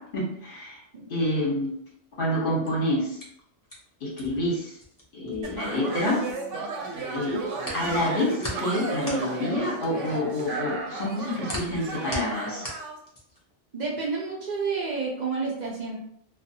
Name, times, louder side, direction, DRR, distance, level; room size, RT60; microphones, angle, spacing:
voice 1, 0.0-0.8 1.1-1.7 2.2-3.2 4.0-4.8 5.1-6.2 7.1-7.4 7.7-12.6, left 1 dB, 50° left, -4 dB, 1.0 m, -28 dB
sound 1, 2.4-6.6 6.9-13.5, left 1 dB, 25° left, 0.5 m, -39 dB
sound 2, 5.4-13.0, right 3 dB, 85° right, 0.9 m, -33 dB
voice 2, 13.7-16.0, right 4 dB, 50° right, -3 dB, 0.5 m, -30 dB
2.4 x 2.3 x 2.7 m, 0.70 s
omnidirectional pair, 1.2 m